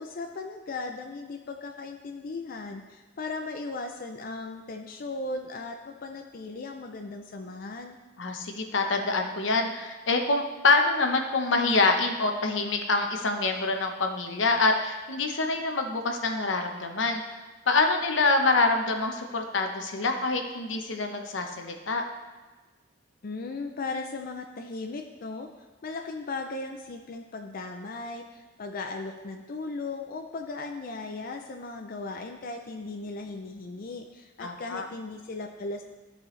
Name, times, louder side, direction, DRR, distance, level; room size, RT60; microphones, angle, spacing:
voice 1, 0.0-8.0 23.2-25.5 25.8-35.8, left 3 dB, 50° left, 4 dB, 0.5 m, -37 dB
voice 2, 8.2-17.2 17.7-22.1 34.4-34.8, left 3 dB, 85° left, 4 dB, 0.9 m, -26 dB
13.5 x 4.7 x 3.2 m, 1.3 s
head